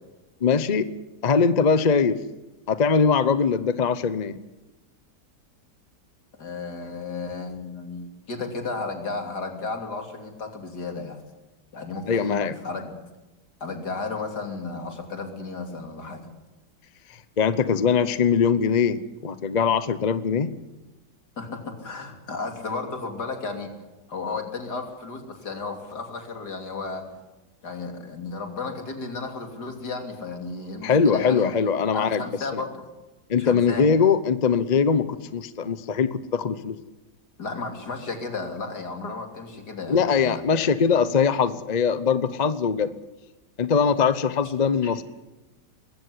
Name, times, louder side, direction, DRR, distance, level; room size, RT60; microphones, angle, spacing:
voice 1, 0.4-0.9 1.2-2.2 2.7-4.4 12.1-12.5 17.4-20.5 30.8-32.2 32.5-32.6 33.3-36.8 39.9-42.9 43.6-45.0, left 6 dB, 35° left, 14 dB, 0.7 m, -22 dB
voice 2, 6.4-11.2 11.7-13.0 13.6-16.3 21.4-23.7 24.1-27.0 27.6-31.6 31.9-32.8 33.4-33.9 37.4-40.4 44.8-44.9, left 3 dB, 70° left, 4 dB, 3.5 m, -33 dB
21.0 x 16.0 x 9.9 m, 1.1 s
omnidirectional pair, 1.8 m